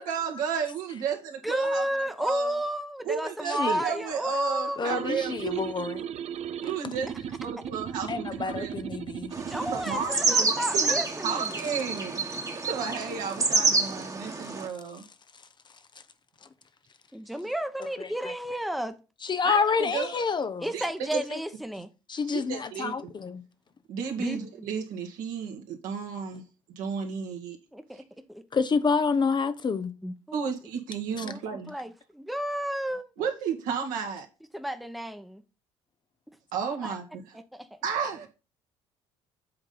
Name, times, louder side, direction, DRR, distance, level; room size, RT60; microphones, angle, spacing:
voice 1, 0.0-1.8 2.2-2.6 3.0-5.6 6.6-8.7 9.7-12.2 12.7-15.0 19.4-20.1 20.7-20.8 21.1-21.2 22.3-22.9 23.9-26.4 26.8-27.6 30.3-31.7 33.2-34.3 36.5-37.0 37.8-38.3, right 6 dB, 70° right, 1.8 m, -33 dB
voice 2, 1.4-5.2 9.5-11.6 12.3-12.4 17.1-19.0 20.6-21.9 24.2-24.7 27.7-28.4 30.0-30.5 30.9-33.1 34.5-35.4 36.7-36.9 37.5-37.7, equal, ahead, 1.0 m, -32 dB
voice 3, 3.4-3.8 4.8-6.0 6.6-6.7 8.1-9.3 17.8-18.3 19.2-20.7 21.1-21.4 22.1-23.4 28.5-29.9 31.2-31.3, left 5 dB, 35° left, 0.8 m, -28 dB
sound 1, 4.9-10.1, right 9 dB, 50° right, 0.6 m, -36 dB
sound 2, 9.3-14.7, right 3 dB, 25° right, 1.4 m, -28 dB
7.8 x 3.7 x 5.5 m
hypercardioid pair, 60°, 14 cm